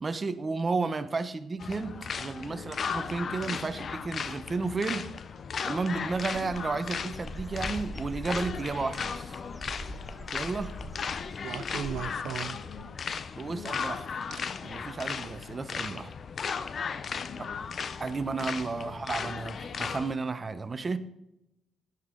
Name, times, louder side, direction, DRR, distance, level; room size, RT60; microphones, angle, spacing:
voice 1, 0.0-5.1 5.6-9.4 10.3-10.7 13.4-14.0 14.3-16.1 17.4-17.5 18.0-21.0, right 4 dB, 30° right, 12 dB, 0.9 m, -32 dB
sound 1, 1.6-20.1, left 6 dB, 50° left, 0.6 m, -36 dB
voice 2, 2.4-2.8 12.5-12.9 13.5-13.8 17.1-17.7 18.7-19.0, left 6 dB, 75° left, 6 dB, 2.0 m, -48 dB
Dog / Bird, 6.0-12.2, equal, ahead, 1.0 m, -43 dB
sound 2, 9.7-10.1 11.4-13.2 14.3-14.4 15.2-15.4, right 9 dB, 75° right, 0.5 m, -38 dB
13.5 x 10.0 x 3.8 m, 0.87 s
cardioid pair, 90°, 0 cm